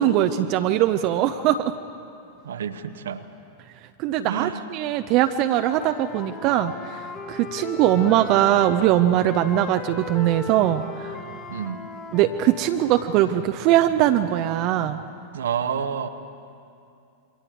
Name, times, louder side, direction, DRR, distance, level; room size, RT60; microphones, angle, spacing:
voice 1, 0.0-1.7 4.0-11.2 12.1-15.0, right 12 dB, 40° right, 8 dB, 0.6 m, -21 dB
voice 2, 2.4-3.3 4.3-4.7 11.5-11.8 15.3-16.1, right 7 dB, 65° right, 10 dB, 1.0 m, -29 dB
Wind instrument woodwind instrument, 5.3-8.8 9.1-13.4, left 4 dB, 30° left, 1.9 m, -38 dB
28.0 x 23.5 x 4.7 m, 2.6 s
figure-of-eight pair, 90°, 0 cm